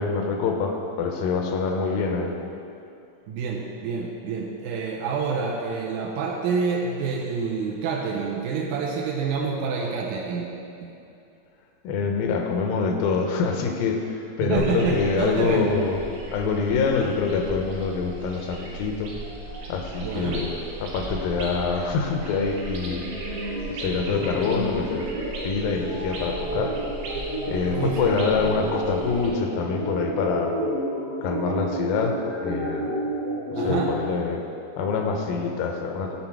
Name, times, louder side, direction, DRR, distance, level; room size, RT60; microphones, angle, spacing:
voice 1, 0.0-2.3 11.8-16.0 16.3-19.1 19.7-20.5 20.8-23.1 23.4-25.1 25.4-26.8 27.5-30.6 31.2-32.9 33.5-34.4 34.8-36.2, left 5 dB, 85° left, 3 dB, 2.4 m, -25 dB
voice 2, 3.3-10.5 10.8-10.9 14.4-15.7 20.0-20.4 27.7-28.2 33.6-33.9, right 5 dB, 85° right, -1 dB, 1.7 m, -27 dB
sound 1, 14.6-29.3, right 2 dB, 65° right, 2.4 m, -37 dB
sound 2, 22.9-34.0, right 1 dB, 45° right, 1.0 m, -31 dB
10.0 x 3.8 x 4.5 m, 2.7 s
omnidirectional pair, 4.0 m